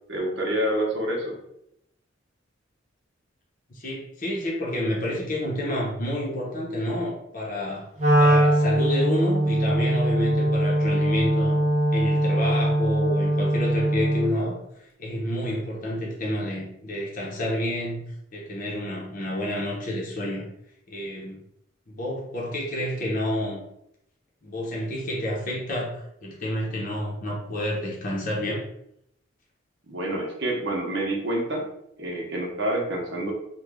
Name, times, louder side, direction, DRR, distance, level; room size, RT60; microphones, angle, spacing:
voice 1, 0.1-1.3 29.9-31.7 32.0-33.3, right 1 dB, 60° right, -1 dB, 0.9 m, -27 dB
voice 2, 3.7-7.9 8.2-11.6 11.9-14.6 15.0-18.0 18.3-20.5 20.9-21.4 21.9-23.7 24.4-28.6, left 1 dB, 40° left, -3 dB, 0.7 m, -29 dB
Wind instrument woodwind instrument, 8.0-14.4, right 1 dB, 35° right, 0.7 m, -21 dB
3.1 x 2.2 x 3.6 m, 0.78 s
head